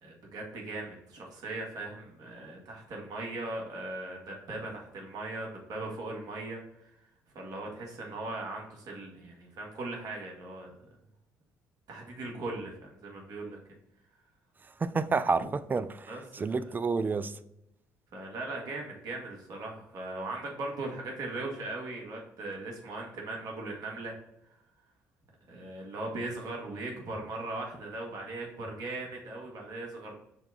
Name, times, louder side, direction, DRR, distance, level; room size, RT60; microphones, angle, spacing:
voice 1, 0.0-6.9 7.3-10.9 11.9-13.6 15.4-15.5 16.1-16.7 18.1-24.1 25.5-30.1, right 2 dB, 60° right, 0 dB, 1.5 m, -39 dB
voice 2, 14.8-17.4, right 4 dB, 25° right, 14 dB, 0.4 m, -30 dB
5.7 x 2.3 x 3.8 m, 0.80 s
supercardioid pair, 65°, 7 cm